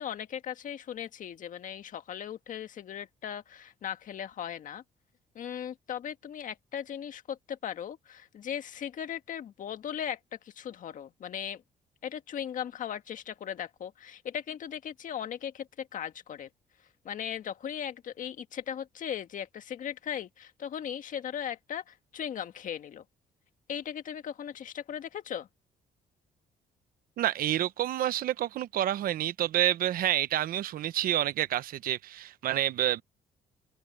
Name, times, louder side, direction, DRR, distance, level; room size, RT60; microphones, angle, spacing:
voice 1, 0.0-4.8 5.3-11.6 12.0-16.5 17.0-23.0 23.7-25.5, left 9 dB, 60° left, 1.7 m, -38 dB
voice 2, 27.2-33.0, right 12 dB, 75° right, 0.9 m, -28 dB
cardioid pair, 100°, 15 cm